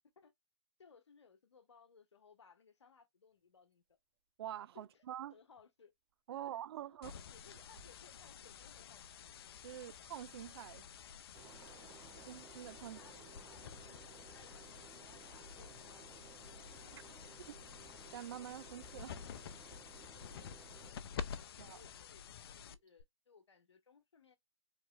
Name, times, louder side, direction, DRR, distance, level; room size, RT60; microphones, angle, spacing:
voice 1, 0.8-4.0 4.7-5.0 5.3-5.9 6.3-9.1 9.7-9.9 11.8-12.3 12.8-13.7 14.1-16.0 16.8-17.6 21.5-24.4, left 5 dB, 85° left, 0.9 m, -64 dB
sound 1, 3.3-21.4 21.8-23.0, right 5 dB, 45° right, 1.7 m, -74 dB
voice 2, 4.4-5.3 6.3-7.2 9.6-10.9 12.3-13.0 16.9-17.0 17.5-17.6 18.1-19.2 21.6-21.8, right 11 dB, 65° right, 0.4 m, -46 dB
sound 2, 7.0-23.0, left 7 dB, 60° left, 0.5 m, -50 dB
sound 3, 11.3-20.9, right 8 dB, 20° right, 0.8 m, -59 dB
4.0 x 2.9 x 2.5 m
hypercardioid pair, 130°, 14 cm